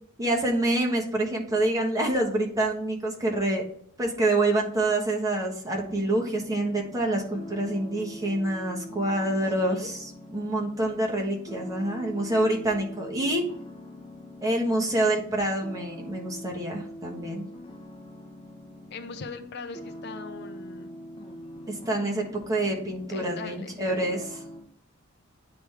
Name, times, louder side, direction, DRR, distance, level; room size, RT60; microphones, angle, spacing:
voice 1, 0.2-3.6 4.0-13.4 14.4-17.5 21.7-24.2, right 1 dB, 15° right, -1 dB, 1.2 m, -27 dB
sound 1, 5.9-24.6, left 1 dB, 25° left, 0.9 m, -44 dB
voice 2, 9.6-9.9 18.9-21.0 23.1-24.2, left 4 dB, 55° left, 7 dB, 0.5 m, -40 dB
9.2 x 3.4 x 3.3 m, 0.66 s
head